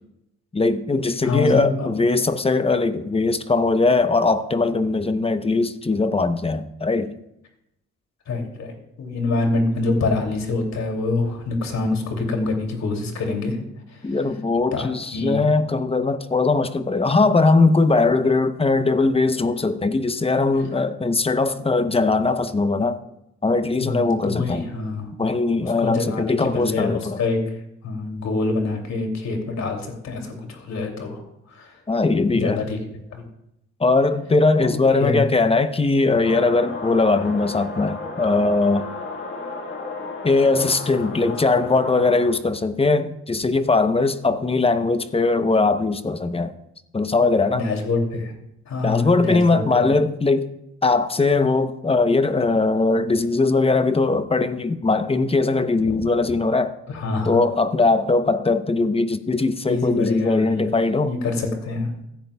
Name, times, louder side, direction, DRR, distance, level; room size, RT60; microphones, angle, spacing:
voice 1, 0.5-7.1 14.0-23.0 23.4-24.6 25.2-27.2 31.9-32.6 33.8-38.9 40.2-46.5 46.9-47.6 48.8-50.5 50.8-56.7 57.3-61.1, left 3 dB, 20° left, 0.8 m, -20 dB
voice 2, 1.2-1.9 8.3-13.6 13.9-14.2 14.7-15.4 23.8-25.1 25.5-27.4 27.8-31.2 31.5-31.8 32.3-32.8 33.1-33.3 34.6-35.2 47.5-48.3 48.7-49.9 55.8-56.0 56.9-57.4 59.7-60.7 61.0-61.9, left 3 dB, 65° left, 2.7 m, -26 dB
sound 1, 36.2-42.3, left 3 dB, 40° left, 1.7 m, -33 dB
15.5 x 10.5 x 2.3 m
cardioid pair, 90°, 30 cm